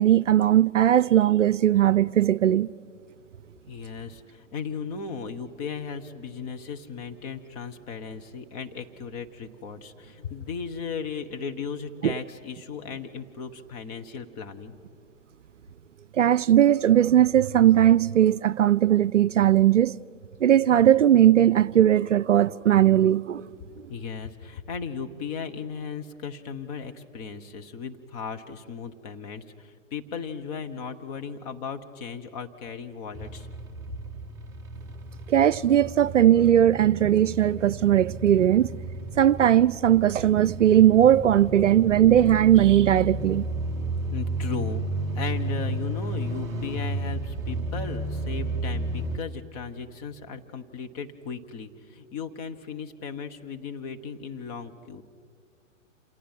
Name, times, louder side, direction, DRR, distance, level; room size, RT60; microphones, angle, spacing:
voice 1, 0.0-2.7 12.0-12.1 16.1-20.0 20.4-23.4 35.3-38.7 39.2-43.5, right 11 dB, 65° right, 0.5 m, -19 dB
voice 2, 3.7-14.7 23.9-33.5 44.1-44.8 45.1-55.0, left 5 dB, 30° left, 1.4 m, -36 dB
sound 1, 33.1-49.2, right 2 dB, 10° right, 0.6 m, -33 dB
29.5 x 27.5 x 5.8 m
figure-of-eight pair, 120°, 39 cm